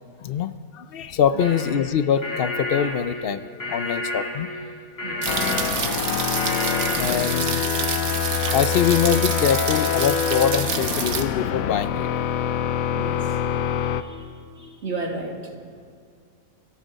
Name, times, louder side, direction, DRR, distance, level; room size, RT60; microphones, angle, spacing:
voice 1, 0.2-4.5 6.9-7.7 8.5-12.1, left 8 dB, 60° left, 12 dB, 0.6 m, -24 dB
sound 1, 1.4-7.5, left 2 dB, 45° left, 5.3 m, -31 dB
voice 2, 5.0-6.1 12.9-15.9, right 3 dB, 50° right, 0 dB, 2.4 m, -36 dB
sound 2, 5.2-11.2, right 7 dB, 70° right, 1.3 m, -28 dB
sound 3, 5.3-14.0, left 9 dB, 80° left, 1.1 m, -25 dB
23.5 x 13.5 x 4.0 m, 2.2 s
omnidirectional pair, 1.5 m